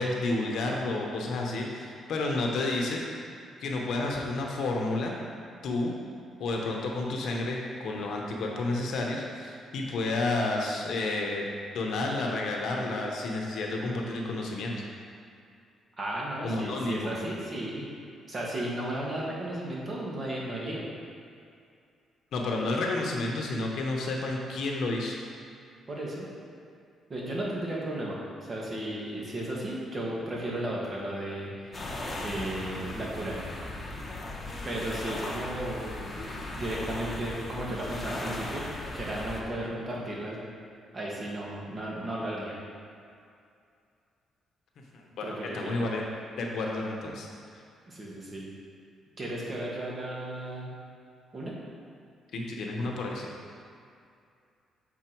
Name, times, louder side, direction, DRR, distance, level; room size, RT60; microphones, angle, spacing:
voice 1, 0.0-3.0 3.6-5.2 5.6-5.9 6.4-11.4 11.7-14.8 16.4-17.2 22.3-25.2 44.9-45.2 45.5-46.0 46.4-47.3 52.3-53.3, left 2 dB, 70° left, 0 dB, 1.0 m, -30 dB
voice 2, 16.0-17.9 18.3-20.8 25.9-26.3 27.1-31.8 32.2-33.4 34.6-38.6 38.9-40.4 40.9-42.5 45.2-45.8 47.9-48.4 49.2-50.7 51.3-51.5, right 1 dB, 35° right, -4 dB, 1.6 m, -34 dB
sound 1, 31.7-39.4, left 2 dB, 25° left, 1.0 m, -37 dB
7.1 x 4.2 x 4.5 m, 2.4 s
cardioid pair, 90°, 0 cm